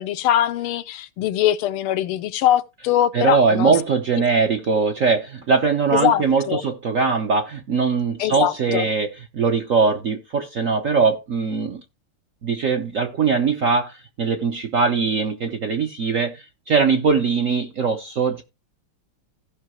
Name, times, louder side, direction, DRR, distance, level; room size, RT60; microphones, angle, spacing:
voice 1, 0.0-3.7 5.9-6.6 8.2-8.8, left 11 dB, 85° left, 1.6 m, -22 dB
voice 2, 3.1-11.8 12.4-18.4, right 5 dB, 60° right, 0.9 m, -21 dB
16.0 x 5.6 x 3.0 m
omnidirectional pair, 2.4 m